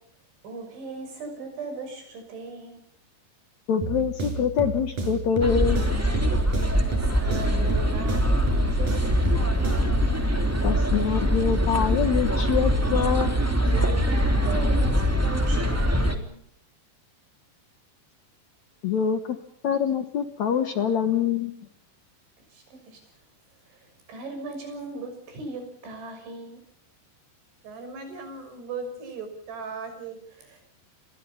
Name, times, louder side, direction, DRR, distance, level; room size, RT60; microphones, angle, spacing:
voice 1, 0.4-2.8 6.8-9.5 13.7-16.4 22.5-23.0 23.7-26.6 30.4-30.6, right 3 dB, 90° right, 5 dB, 8.8 m, -38 dB
voice 2, 3.7-5.8 10.6-13.3 18.8-19.4 19.6-21.6, left 7 dB, 70° left, 9 dB, 1.7 m, -25 dB
sound 1, 3.8-10.0, right 3 dB, 45° right, 6.7 m, -32 dB
sound 2, 5.4-16.2, equal, 5° right, 1.8 m, -23 dB
voice 3, 27.6-30.2, right 4 dB, 65° right, 8 dB, 7.0 m, -37 dB
29.0 x 22.5 x 5.7 m, 0.68 s
omnidirectional pair, 5.2 m